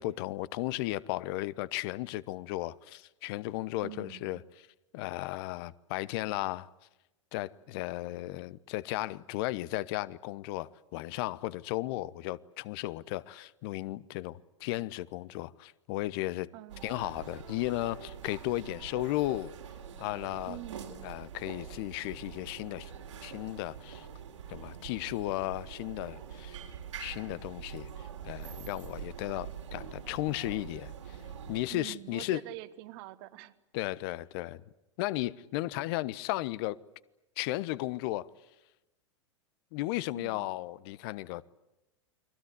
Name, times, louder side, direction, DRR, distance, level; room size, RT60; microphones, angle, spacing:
voice 1, 0.0-4.4 4.9-6.7 7.3-16.5 16.8-19.5 20.0-20.6 21.0-22.9 23.2-24.0 24.5-26.6 27.0-27.9 28.2-30.9 31.5-32.4 33.7-34.6 35.0-36.8 37.4-38.3 39.7-41.4, left 17 dB, 50° left, 1.0 m, -35 dB
voice 2, 3.8-4.4 16.5-17.0 20.5-21.1 31.7-33.6 40.1-40.5, right 17 dB, 50° right, 1.6 m, -45 dB
sound 1, 16.7-31.6, right 8 dB, 75° right, 3.7 m, -45 dB
29.5 x 22.5 x 8.2 m
figure-of-eight pair, 95°, 16 cm